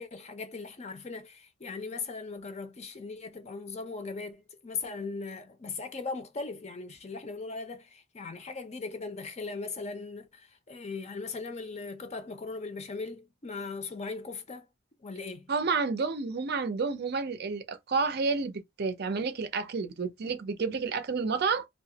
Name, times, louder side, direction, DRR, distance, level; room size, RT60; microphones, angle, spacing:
voice 1, 0.0-14.7 15.0-15.5, left 4 dB, 35° left, 0.6 m, -39 dB
voice 2, 15.5-21.7, right 4 dB, 50° right, 0.5 m, -30 dB
2.8 x 2.3 x 2.7 m
head